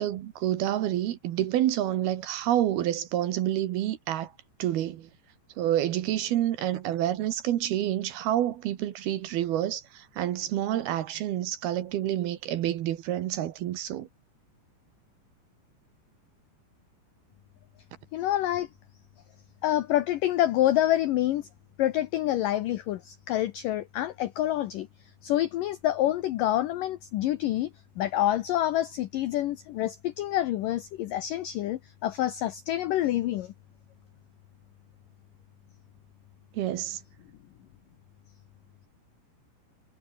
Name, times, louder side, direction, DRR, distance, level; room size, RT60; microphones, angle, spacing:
voice 1, 0.0-4.3 4.6-5.1 5.6-14.1 36.5-37.0, right 12 dB, 70° right, 3.0 m, -28 dB
voice 2, 18.1-18.7 19.6-21.5 21.8-24.9 25.2-27.7 28.0-33.5, left 13 dB, 85° left, 1.9 m, -27 dB
omnidirectional pair, 5.1 m